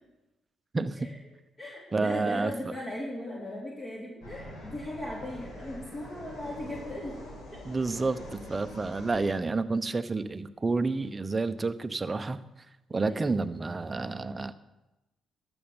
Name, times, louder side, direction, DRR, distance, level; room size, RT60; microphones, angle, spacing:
voice 1, 0.7-1.1 1.9-2.7 7.6-12.4 12.9-14.5, right 3 dB, 25° right, 11 dB, 0.8 m, -29 dB
voice 2, 1.6-7.1 7.5-7.6 13.1-13.2, left 1 dB, 30° left, -4 dB, 3.0 m, -38 dB
sound 1, 4.2-9.3, left 1 dB, 75° left, 4.7 m, -44 dB
12.5 x 7.0 x 7.1 m, 1.0 s
cardioid pair, 90°, 0 cm